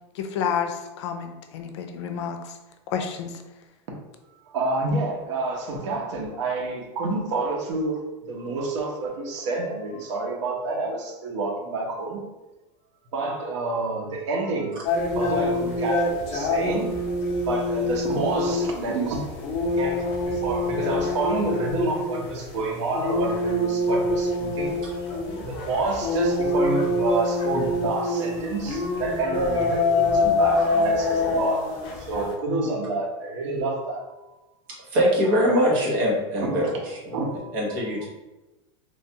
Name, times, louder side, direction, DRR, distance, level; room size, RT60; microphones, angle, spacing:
voice 1, 0.2-2.4 2.9-3.3, left 7 dB, 75° left, 6 dB, 0.5 m, -29 dB
voice 2, 4.5-8.0 8.3-12.2 13.1-14.8 15.1-17.0 17.5-19.3 19.8-24.7 25.4-31.7 32.0-34.1 35.5-35.7 36.3-36.7 37.1-37.6, right 3 dB, 85° right, 0 dB, 0.8 m, -28 dB
sound 1, 14.8-32.3, left 2 dB, 40° left, 0.7 m, -25 dB
voice 3, 34.9-36.7 37.0-37.1 37.5-38.1, equal, 50° right, -4 dB, 1.0 m, -22 dB
3.1 x 2.3 x 2.8 m, 1.1 s
supercardioid pair, 170°, 15 cm